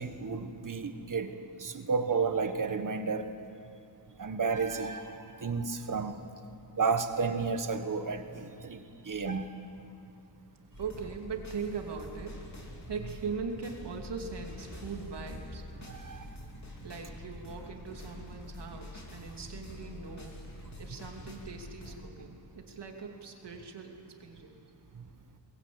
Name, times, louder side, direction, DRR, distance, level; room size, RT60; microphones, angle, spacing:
voice 1, 0.0-3.3 4.2-6.2 6.8-9.5 15.7-16.3 24.9-25.1, right 4 dB, 45° right, 8 dB, 1.5 m, -32 dB
sound 1, 10.7-22.0, left 1 dB, 40° left, 3.4 m, -46 dB
voice 2, 10.8-12.4 12.9-15.6 16.8-24.6, right 5 dB, 65° right, 2 dB, 2.9 m, -40 dB
22.5 x 21.5 x 8.8 m, 2.6 s
wide cardioid pair, 165°, 44 cm